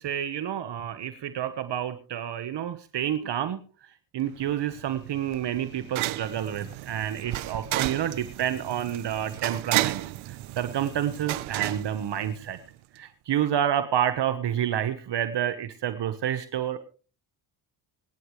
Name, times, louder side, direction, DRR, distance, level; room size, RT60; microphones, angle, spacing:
voice 1, 0.0-10.0 10.3-12.6 12.9-16.9, right 10 dB, 60° right, 11 dB, 1.3 m, -29 dB
sound 1, 4.4-12.7, right 17 dB, 80° right, 0.9 m, -33 dB
25.5 x 10.0 x 3.2 m, 0.38 s
cardioid pair, 80°, 48 cm